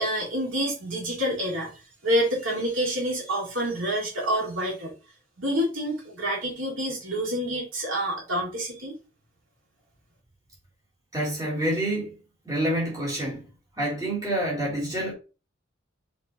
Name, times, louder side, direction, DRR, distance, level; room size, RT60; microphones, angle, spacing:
voice 1, 0.0-1.7 2.0-4.9 5.4-8.9, equal, 75° right, 3.6 m, -27 dB
voice 2, 11.1-12.1 12.5-13.4 13.8-15.1, right 1 dB, 20° right, 3.7 m, -27 dB
7.0 x 4.9 x 3.1 m
head